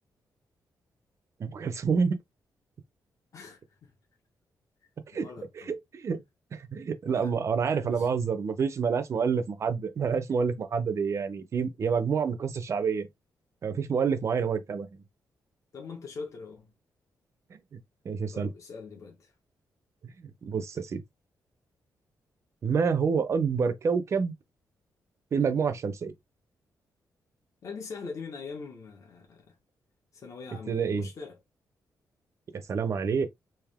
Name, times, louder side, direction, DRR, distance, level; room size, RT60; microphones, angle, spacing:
voice 1, 1.4-2.2 5.1-5.3 5.7-6.2 6.5-13.1 13.6-15.0 17.7-17.8 18.0-18.5 20.2-21.0 22.6-24.3 25.3-26.1 30.7-31.1 32.5-33.3, right 6 dB, 40° right, 0.6 m, -28 dB
voice 2, 3.3-3.9 5.2-5.8 7.0-7.3 7.6-8.2 15.7-16.7 18.3-19.3 27.6-29.5 30.1-31.4, left 4 dB, 50° left, 1.2 m, -42 dB
3.5 x 2.6 x 3.5 m
wide cardioid pair, 160°, 7 cm